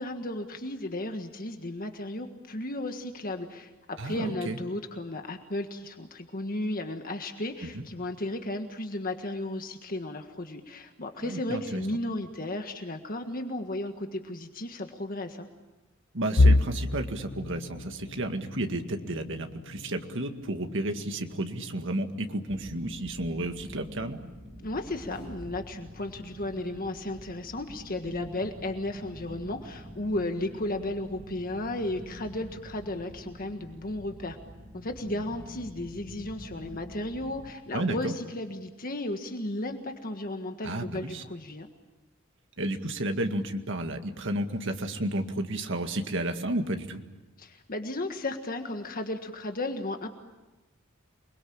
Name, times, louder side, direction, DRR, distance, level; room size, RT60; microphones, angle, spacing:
voice 1, 0.0-3.7 4.0-15.5 24.6-34.4 34.7-41.7 47.4-50.1, left 1 dB, 45° left, 5 dB, 1.6 m, -34 dB
voice 2, 4.0-4.6 7.6-7.8 11.2-11.8 16.1-24.2 37.7-38.1 40.6-41.2 42.6-47.0, right 1 dB, 60° right, 5 dB, 2.0 m, -32 dB
sound 1, 16.4-28.2 28.6-28.9 29.3-29.4 30.3-30.8, left 2 dB, 85° left, 0.9 m, -31 dB
sound 2, 22.5-37.5, equal, 30° right, 2.0 m, -46 dB
sound 3, 24.9-25.7 26.1-26.2, equal, 5° right, 3.6 m, -48 dB
28.0 x 21.5 x 8.7 m, 1.1 s
head